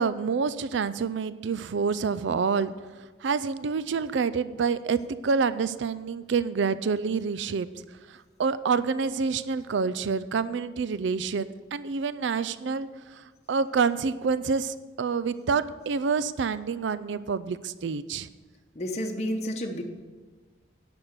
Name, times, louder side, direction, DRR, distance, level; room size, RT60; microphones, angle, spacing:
voice 1, 0.0-2.7 3.2-7.7 8.1-12.9 13.2-18.3, right 5 dB, 80° right, 15 dB, 0.4 m, -27 dB
voice 2, 18.7-19.8, equal, 35° left, 2 dB, 0.9 m, -30 dB
10.5 x 6.2 x 8.0 m, 1.3 s
head